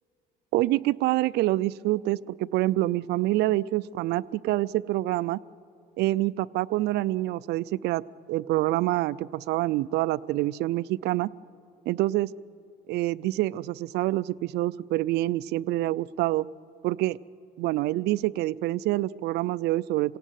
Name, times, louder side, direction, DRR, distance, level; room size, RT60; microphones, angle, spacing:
voice 1, 0.5-5.4 6.0-8.0 8.3-11.3 11.9-12.3 12.9-16.5 16.8-17.2 17.6-20.2, right 16 dB, 80° right, 18 dB, 0.5 m, -26 dB
27.0 x 18.0 x 9.2 m, 2.6 s
cardioid pair, 110°, 17 cm